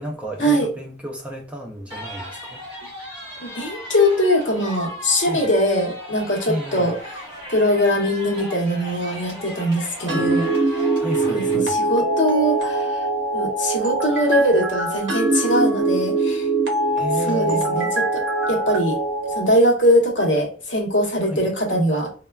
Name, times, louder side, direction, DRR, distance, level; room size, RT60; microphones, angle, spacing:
voice 1, 0.0-2.6 5.1-5.4 6.5-6.9 10.0-10.4 10.9-11.8 17.0-17.8 21.3-21.5, equal, 5° right, 0.3 m, -31 dB
sound 1, 1.9-11.5, equal, 25° right, 1.4 m, -37 dB
voice 2, 3.4-6.9 7.5-10.5 11.3-13.1 13.3-16.5 17.3-19.0 19.3-22.1, equal, 65° left, 0.8 m, -21 dB
sound 2, 10.1-19.5, right 2 dB, 65° right, 0.7 m, -22 dB
3.1 x 2.1 x 2.2 m
head